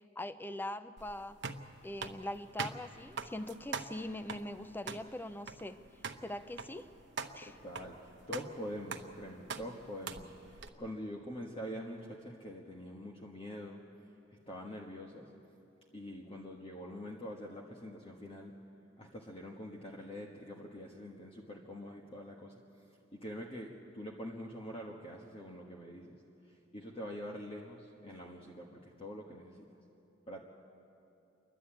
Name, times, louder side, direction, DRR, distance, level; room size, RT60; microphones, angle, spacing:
voice 1, 0.2-1.4 1.8-5.8 6.2-6.9 7.3-7.6, left 1 dB, 10° left, 12 dB, 0.5 m, -42 dB
sound 1, 1.0-10.7, right 5 dB, 65° right, 1.0 m, -44 dB
voice 2, 7.4-13.8 14.5-15.3 15.9-18.5 19.0-22.5 23.1-26.2 26.7-29.7 30.3-30.4, equal, 30° left, -1 dB, 1.4 m, -45 dB
29.0 x 11.5 x 8.8 m, 2.8 s
head